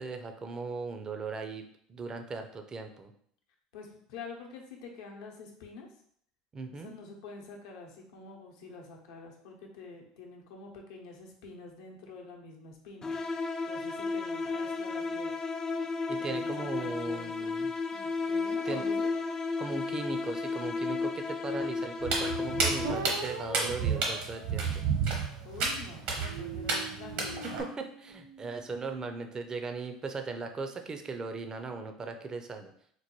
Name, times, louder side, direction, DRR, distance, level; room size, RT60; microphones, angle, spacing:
voice 1, 0.0-1.6 1.9-3.1 6.5-6.9 16.1-17.7 18.6-18.8 19.6-24.8 27.4-32.7, right 4 dB, 30° right, 6 dB, 0.5 m, -38 dB
voice 2, 3.7-5.9 6.7-13.1 13.6-15.3 16.2-17.6 17.9-19.1 25.4-27.5, left 4 dB, 75° left, 1 dB, 0.8 m, -47 dB
sound 1, 13.0-23.2, left 4 dB, 25° left, 0.3 m, -33 dB
Walk footsteps, 22.0-27.6, right 4 dB, 65° right, 1.0 m, -31 dB
sound 2, 22.8-25.5 26.1-28.6, right 3 dB, 80° right, 0.4 m, -42 dB
4.4 x 2.2 x 3.0 m, 0.64 s
hypercardioid pair, 80°, 2 cm